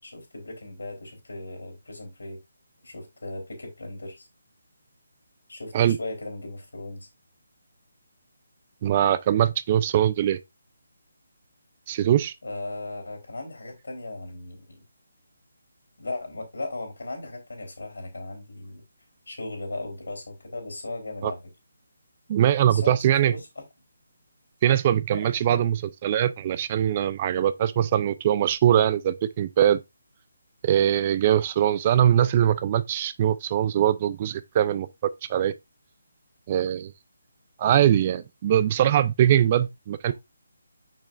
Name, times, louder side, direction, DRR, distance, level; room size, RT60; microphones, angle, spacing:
voice 1, 0.0-2.4 2.8-4.3 5.5-7.1 12.4-14.8 16.0-18.8 19.3-21.4 22.6-23.6 25.5-25.6, left 2 dB, 90° left, 3.5 m, -37 dB
voice 2, 8.8-10.4 11.9-12.3 21.2-21.3 22.3-23.3 24.6-29.8 30.6-34.9 35.3-35.5 36.5-36.9 37.6-40.1, right 10 dB, 30° right, 0.4 m, -22 dB
6.3 x 6.1 x 2.5 m
hypercardioid pair, 160°, 0 cm